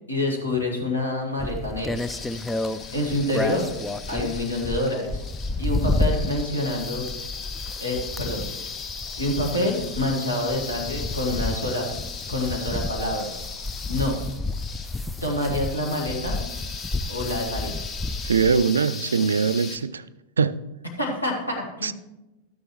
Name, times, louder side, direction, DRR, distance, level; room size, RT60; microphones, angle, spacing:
voice 1, 0.1-2.0 2.9-3.7 4.1-5.2 5.6-7.1 7.8-8.4 9.2-11.9 12.3-13.3 13.9-14.1 15.2-16.5 17.1-18.0 21.0-21.9, left 1 dB, 85° left, 1.9 m, -27 dB
sound 1, 1.4-18.6, left 2 dB, 5° left, 0.3 m, -31 dB
sound 2, 1.9-19.8, left 5 dB, 30° left, 1.0 m, -38 dB
voice 2, 18.2-20.0 20.4-20.6 21.8-21.9, right 5 dB, 70° right, 0.3 m, -22 dB
12.5 x 9.4 x 3.1 m
figure-of-eight pair, 90°, 0 cm